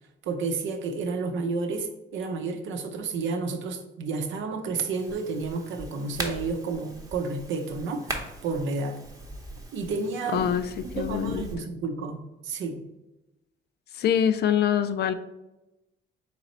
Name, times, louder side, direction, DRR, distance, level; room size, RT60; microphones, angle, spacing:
voice 1, 0.2-9.0 9.7-10.6 11.0-12.8, right 4 dB, 75° right, 5 dB, 0.7 m, -31 dB
sound 1, 4.9-11.6, right 1 dB, 15° right, 0.8 m, -40 dB
voice 2, 10.3-11.5 13.9-15.1, left 9 dB, 55° left, 11 dB, 0.4 m, -25 dB
4.1 x 3.0 x 4.1 m, 0.98 s
cardioid pair, 90°, 20 cm